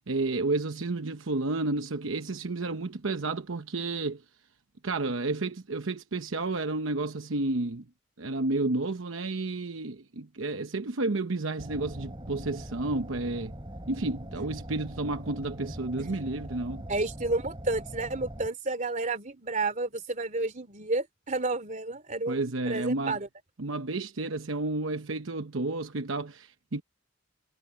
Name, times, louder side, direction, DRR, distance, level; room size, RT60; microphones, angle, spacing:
voice 1, 0.1-4.2 4.8-7.8 8.2-13.5 13.9-16.8 22.3-23.2 23.6-26.8, right 2 dB, 75° right, 0.9 m, -31 dB
sound 1, 11.6-18.5, equal, 25° right, 5.0 m, -41 dB
voice 2, 16.9-23.3, right 2 dB, 40° right, 3.0 m, -31 dB
head